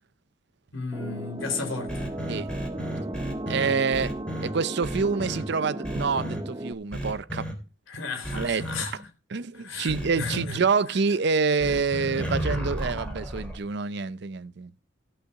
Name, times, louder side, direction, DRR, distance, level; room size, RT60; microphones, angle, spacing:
voice 1, 0.7-2.1 7.9-9.1 9.5-10.6, left 4 dB, 75° left, 3.5 m, -34 dB
sound 1, 0.9-6.7, right 1 dB, 20° right, 0.8 m, -35 dB
sound 2, 1.9-4.5 4.8-5.4 5.8-6.4 6.9-7.5 8.2-8.8 9.9-10.4 11.6-13.6, equal, 5° left, 3.2 m, -32 dB
voice 2, 3.5-4.1 4.4-7.5 8.3-8.7 9.3-14.8, right 5 dB, 55° right, 0.5 m, -27 dB
16.5 x 5.7 x 5.8 m
head